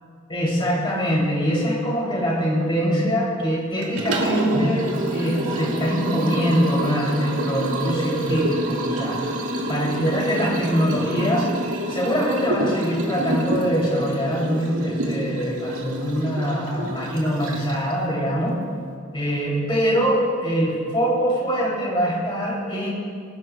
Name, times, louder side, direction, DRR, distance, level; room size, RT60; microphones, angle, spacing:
voice 1, 0.3-9.3 9.7-11.5 11.9-18.6 19.1-22.9, equal, 25° left, -5 dB, 3.0 m, -23 dB
Liquid, 3.8-17.9, right 1 dB, 85° right, 2.0 m, -27 dB
25.5 x 12.0 x 2.3 m, 2.3 s
head